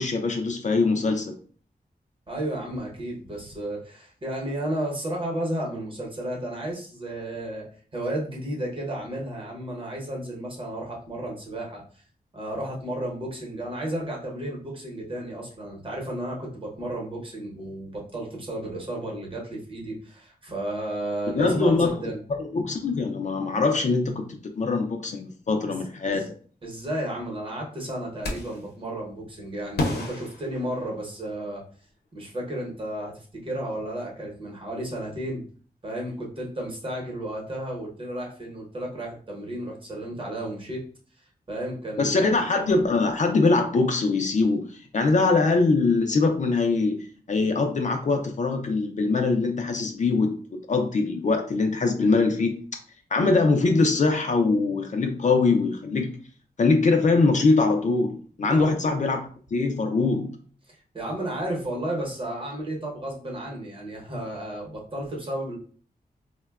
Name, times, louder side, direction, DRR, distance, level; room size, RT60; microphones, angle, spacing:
voice 1, 0.0-1.4 21.3-21.9 22.4-26.3 42.0-52.6 53.1-56.1 56.6-59.2 59.5-60.3, left 3 dB, 50° left, 4 dB, 0.4 m, -23 dB
voice 2, 2.3-7.7 7.9-11.8 12.3-22.2 25.7-26.3 26.6-31.6 32.1-35.4 35.8-40.8 41.5-42.3 58.5-58.7 60.9-65.6, right 1 dB, 30° right, -2 dB, 0.9 m, -33 dB
sound 1, 28.2-28.7 29.8-31.3, left 2 dB, 85° left, 0.7 m, -31 dB
3.7 x 2.1 x 2.3 m, 0.43 s
wide cardioid pair, 135°, 16 cm